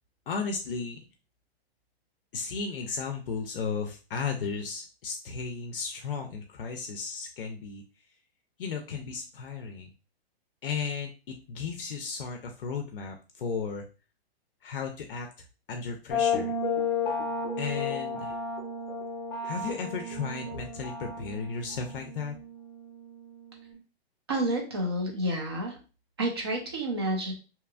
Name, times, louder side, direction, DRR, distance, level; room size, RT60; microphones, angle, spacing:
voice 1, 0.3-1.0 2.3-7.8 8.6-9.9 10.6-13.8 14.6-15.3 15.7-16.5 17.6-18.3 19.4-22.3, left 5 dB, 60° left, 3 dB, 0.5 m, -34 dB
sound 1, 16.1-23.7, left 4 dB, 25° left, 0.6 m, -33 dB
voice 2, 24.3-25.8 26.2-27.3, right 1 dB, 25° right, 2 dB, 0.5 m, -29 dB
2.8 x 2.3 x 2.3 m, 0.33 s
hypercardioid pair, 170°, 31 cm